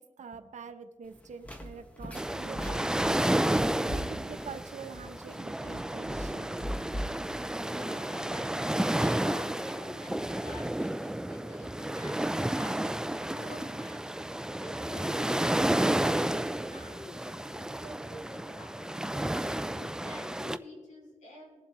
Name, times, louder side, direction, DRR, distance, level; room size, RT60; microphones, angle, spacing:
voice 1, 0.0-2.8 3.8-6.6, right 6 dB, 85° right, 8 dB, 0.8 m, -45 dB
sound 1, 1.0-8.5, equal, 10° left, 1.3 m, -41 dB
sound 2, 2.2-20.6, right 1 dB, 5° right, 0.3 m, -31 dB
voice 2, 7.6-18.9 19.4-21.6, left 1 dB, 75° left, -1 dB, 2.9 m, -48 dB
21.0 x 7.4 x 3.1 m, 1.4 s
wide cardioid pair, 100°, 12 cm